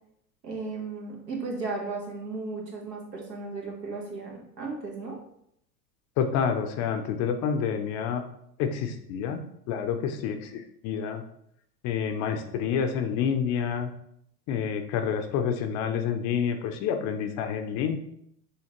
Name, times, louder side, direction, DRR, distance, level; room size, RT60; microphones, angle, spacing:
voice 1, 0.4-5.2, right 3 dB, 85° right, -1 dB, 1.4 m, -35 dB
voice 2, 6.2-8.2 8.6-9.4 9.7-11.2 11.8-13.9 14.5-18.0, left 7 dB, 35° left, 6 dB, 0.5 m, -28 dB
6.3 x 2.8 x 2.9 m, 0.72 s
hypercardioid pair, 90°, 48 cm